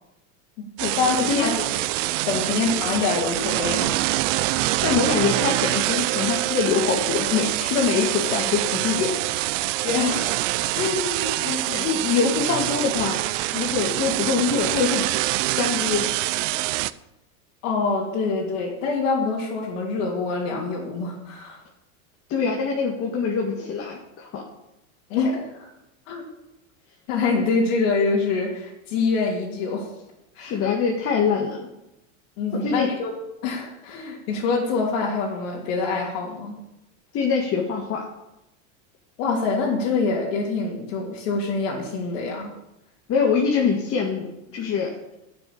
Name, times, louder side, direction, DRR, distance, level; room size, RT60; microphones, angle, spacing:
sound 1, 0.8-16.9, right 17 dB, 60° right, 0.6 m, -25 dB
voice 1, 1.0-1.5 2.3-4.6 9.8-11.7 17.6-21.6 25.1-25.7 26.1-26.3 27.1-29.9 30.3-30.6 32.4-33.1 33.4-36.6 39.2-42.5, left 4 dB, 60° left, -4 dB, 3.1 m, -25 dB
voice 2, 4.8-9.1 11.4-13.2 13.5-15.1 15.5-16.1 22.3-24.4 30.4-31.7 32.5-32.9 37.1-38.0 43.1-45.0, left 5 dB, 35° left, 0 dB, 2.0 m, -24 dB
11.0 x 6.9 x 8.7 m, 0.91 s
supercardioid pair, 140°, 41 cm